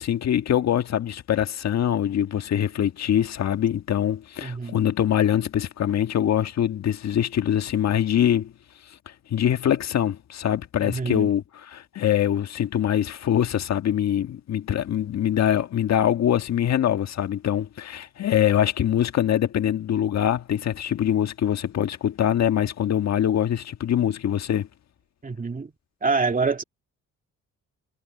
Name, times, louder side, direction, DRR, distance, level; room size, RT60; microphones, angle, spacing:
voice 1, 0.0-8.5 9.3-24.7, left 10 dB, 60° left, 1.6 m, -23 dB
voice 2, 4.4-4.8 10.8-11.3 25.2-25.7 26.0-26.6, right 4 dB, 30° right, 2.4 m, -26 dB
cardioid pair, 90°, 30 cm